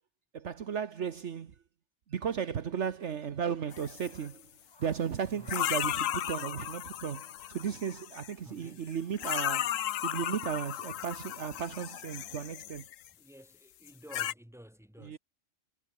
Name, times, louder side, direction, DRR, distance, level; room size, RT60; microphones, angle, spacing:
voice 1, 0.3-1.5 2.1-4.5 4.8-12.9 15.0-15.2, right 7 dB, 65° right, 1.3 m, -35 dB
sound 1, 3.0-12.6, left 1 dB, 20° left, 2.9 m, -65 dB
sound 2, 3.7-4.3 5.5-8.3 9.1-13.1 13.9-14.3, left 12 dB, 85° left, 1.1 m, -35 dB
voice 2, 8.4-8.9 13.1-15.2, equal, ahead, 3.1 m, -52 dB
omnidirectional pair, 1.3 m